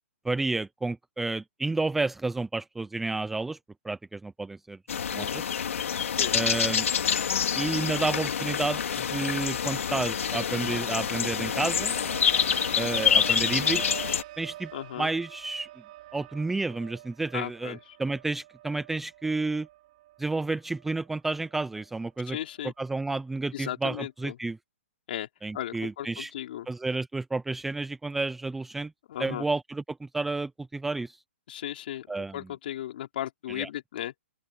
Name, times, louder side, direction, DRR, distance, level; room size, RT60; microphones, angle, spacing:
voice 1, 0.2-3.6 3.8-4.8 5.1-5.5 6.3-6.9 7.5-8.8 9.1-11.9 12.8-13.8 14.4-14.7 15.0-15.7 16.1-19.7 20.2-22.4 22.8-24.6 25.4-26.3 26.7-28.9 29.2-31.2 32.1-32.4 33.5-33.7, right 3 dB, 5° right, 0.5 m, -31 dB
sound 1, 4.9-14.2, left 7 dB, 80° left, 2.6 m, -27 dB
sound 2, 11.4-21.1 21.4-21.9, right 15 dB, 35° right, 3.6 m, -45 dB
voice 2, 14.7-15.1 17.3-18.0 22.3-22.7 23.5-24.4 25.1-25.3 25.5-26.7 29.1-29.5 31.5-32.1 32.3-34.1, left 12 dB, 45° left, 5.0 m, -36 dB
open air
hypercardioid pair, 170°, 7 cm